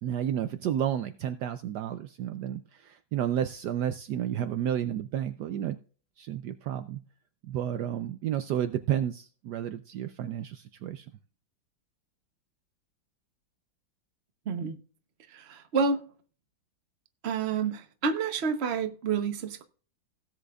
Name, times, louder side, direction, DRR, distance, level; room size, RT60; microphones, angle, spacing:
voice 1, 0.0-5.8 6.2-7.0 7.4-11.1, right 10 dB, 70° right, 1.1 m, -31 dB
voice 2, 14.5-14.8 15.3-16.1 17.2-19.6, right 5 dB, 45° right, 1.0 m, -29 dB
17.5 x 7.7 x 2.4 m
omnidirectional pair, 2.0 m